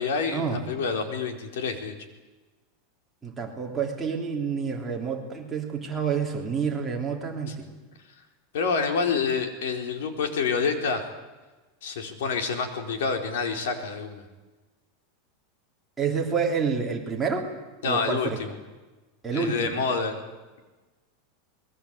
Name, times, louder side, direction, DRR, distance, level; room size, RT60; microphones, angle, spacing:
voice 1, 0.0-1.9 7.5-7.6 8.5-11.0 11.8-14.2 17.8-18.5 19.3-20.2, left 5 dB, 80° left, 6 dB, 4.3 m, -27 dB
voice 2, 3.2-7.7 16.0-17.5 17.8-18.4 19.2-19.7, right 6 dB, 10° right, -1 dB, 3.1 m, -28 dB
26.0 x 21.5 x 8.4 m, 1.2 s
supercardioid pair, 175°, 0 cm